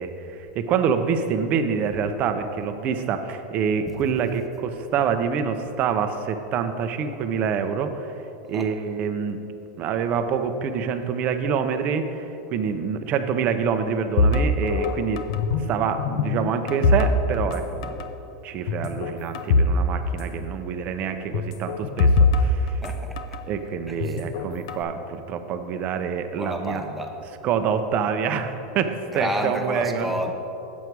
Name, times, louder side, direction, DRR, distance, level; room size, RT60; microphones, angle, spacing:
voice 1, 0.0-8.1 8.5-9.4 9.8-15.2 15.6-18.0 18.4-22.7 23.5-26.8 27.4-30.1, right 6 dB, 45° right, 8 dB, 0.7 m, -26 dB
sound 1, 14.2-15.7 16.0-17.6 17.8-18.1 18.7-19.8 20.0-20.1 21.3-23.4 24.0-24.8, left 3 dB, 65° left, 0.6 m, -22 dB
voice 2, 22.8-23.4 23.9-24.2 26.4-27.2 29.1-30.3, equal, 5° right, 2 dB, 0.9 m, -30 dB
7.9 x 7.2 x 4.6 m, 2.9 s
hypercardioid pair, 115°, 4 cm